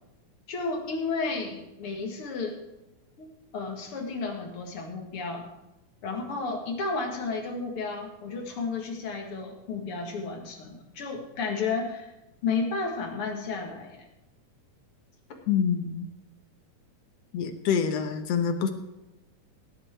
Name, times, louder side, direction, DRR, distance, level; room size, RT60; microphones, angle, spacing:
voice 1, 0.5-2.6 3.2-5.5 6.0-12.1 12.4-14.0, left 4 dB, 50° left, 2 dB, 2.4 m, -32 dB
voice 2, 15.5-16.1 17.3-18.7, left 7 dB, 65° left, 7 dB, 1.7 m, -26 dB
17.5 x 8.5 x 4.4 m, 0.97 s
omnidirectional pair, 3.7 m